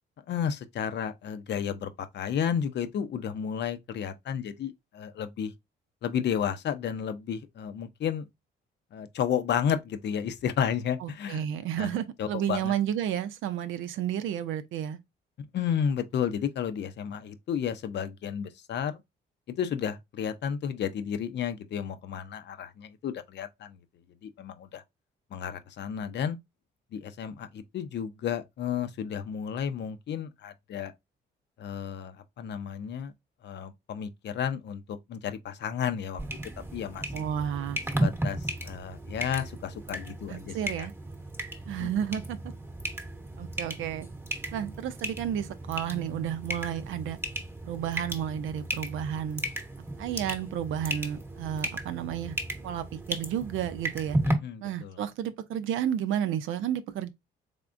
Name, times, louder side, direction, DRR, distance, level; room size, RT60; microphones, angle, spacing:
voice 1, 0.3-5.5 6.0-8.3 8.9-11.5 11.8-11.9 12.2-12.7 15.5-19.0 19.5-23.8 24.2-24.8 25.3-26.4 26.9-30.9 31.6-33.1 33.4-36.2 36.7-37.2 38.0-40.9 41.8-41.9 54.2-55.0, left 8 dB, 60° left, 0.6 m, -32 dB
voice 2, 11.0-15.0 37.1-37.8 40.3-40.9 41.7-42.4 43.4-44.1 44.5-47.2 47.7-49.4 50.0-52.3 52.6-54.2 54.6-57.1, right 9 dB, 80° right, 0.6 m, -31 dB
sound 1, 36.2-54.3, right 1 dB, 10° right, 0.9 m, -35 dB
3.6 x 3.5 x 2.5 m
cardioid pair, 90°, 20 cm